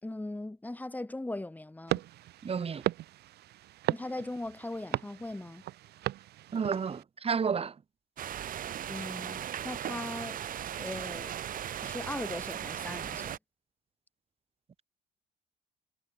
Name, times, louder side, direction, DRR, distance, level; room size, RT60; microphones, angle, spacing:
voice 1, 0.0-2.0 3.9-5.6 8.9-10.4 10.8-11.3 11.8-13.4, left 2 dB, 10° left, 7.6 m, -39 dB
sound 1, 1.9-7.0, right 15 dB, 75° right, 4.9 m, -37 dB
voice 2, 2.4-2.8 6.5-7.7, right 6 dB, 35° right, 7.8 m, -31 dB
sound 2, 8.2-13.4, right 10 dB, 55° right, 4.4 m, -37 dB
cardioid pair, 110°, 17 cm